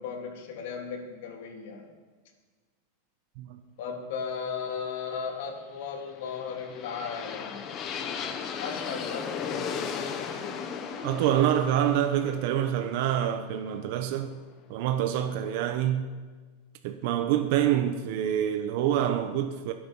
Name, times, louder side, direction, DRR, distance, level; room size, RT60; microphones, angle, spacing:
voice 1, 0.0-1.9 3.8-7.6 8.5-9.9, left 6 dB, 65° left, 3.3 m, -36 dB
sound 1, 6.1-14.1, left 6 dB, 30° left, 1.3 m, -36 dB
voice 2, 11.0-14.4 14.7-16.1 16.8-19.7, right 10 dB, 55° right, 1.1 m, -26 dB
23.0 x 8.5 x 5.6 m
supercardioid pair, 145°, 0 cm